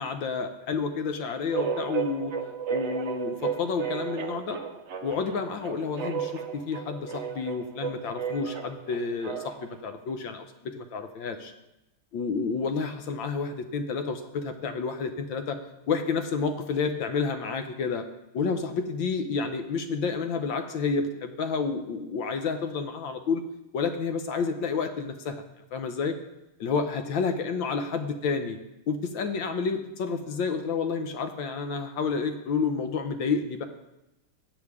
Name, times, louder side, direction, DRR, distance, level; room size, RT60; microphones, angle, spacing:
voice 1, 0.0-2.3 2.7-4.6 5.0-11.5 12.1-15.6 15.9-18.0 18.3-23.4 23.7-25.4 25.7-26.1 26.6-28.6 28.9-33.7, left 5 dB, 70° left, 7 dB, 1.5 m, -30 dB
sound 1, 1.5-9.7, right 7 dB, 65° right, 0.7 m, -33 dB
15.0 x 8.2 x 3.6 m, 0.93 s
omnidirectional pair, 2.3 m